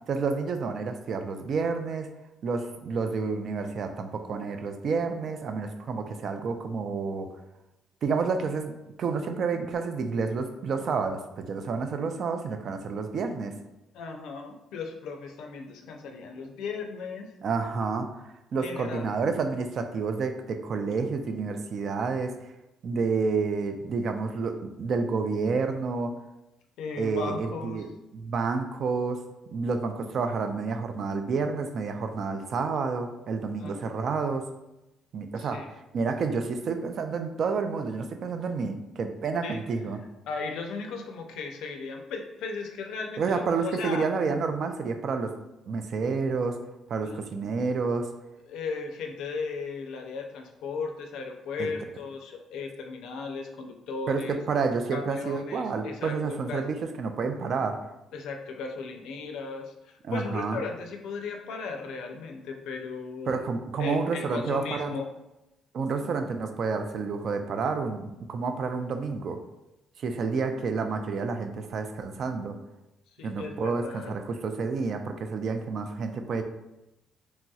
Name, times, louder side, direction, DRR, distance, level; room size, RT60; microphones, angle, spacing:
voice 1, 0.1-2.1 2.4-7.3 8.0-8.7 9.0-13.5 17.4-18.1 18.5-22.5 22.8-26.1 27.0-27.9 28.1-29.2 29.5-34.5 35.1-40.0 43.2-45.3 45.7-46.6 46.9-48.1 51.6-51.7 54.1-57.8 60.0-60.6 63.3-65.0 65.7-69.4 70.0-72.6 73.2-76.4, right 4 dB, 55° right, 7 dB, 0.3 m, -29 dB
voice 2, 13.9-17.3 18.6-19.1 26.8-27.8 33.6-33.8 35.4-35.7 39.4-39.6 40.3-44.1 47.0-47.2 48.5-54.4 54.9-56.6 58.1-63.5 63.8-65.1 73.2-74.1, left 4 dB, 85° left, 3 dB, 0.4 m, -36 dB
3.1 x 2.7 x 2.3 m, 0.95 s
cardioid pair, 100°, 0 cm